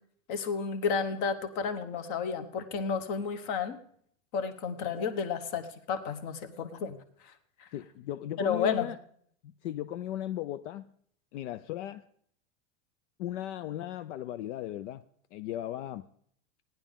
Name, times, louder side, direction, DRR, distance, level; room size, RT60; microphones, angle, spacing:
voice 1, 0.3-3.8 4.3-7.0 7.2-7.3 7.6-7.7 8.4-8.9, left 6 dB, 40° left, 1.1 m, -32 dB
voice 2, 7.7-9.0 9.4-10.9 11.3-12.1 13.2-15.0 15.3-16.1, left 13 dB, 70° left, 0.6 m, -36 dB
17.5 x 10.5 x 3.6 m
supercardioid pair, 170°, 36 cm